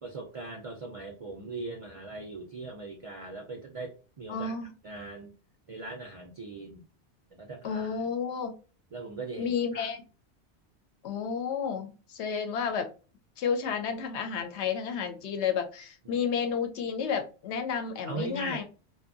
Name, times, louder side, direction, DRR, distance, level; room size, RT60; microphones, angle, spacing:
voice 1, 0.0-4.5 4.8-5.3 5.7-6.8 7.3-8.1 8.9-9.9 16.0-16.2 18.1-18.6, right 3 dB, 55° right, 2 dB, 0.4 m, -40 dB
voice 2, 4.3-4.7 7.6-8.5 9.4-10.0 11.0-12.9 13.4-18.6, left 6 dB, 85° left, 6 dB, 0.9 m, -31 dB
2.7 x 2.2 x 2.5 m, 0.34 s
omnidirectional pair, 1.1 m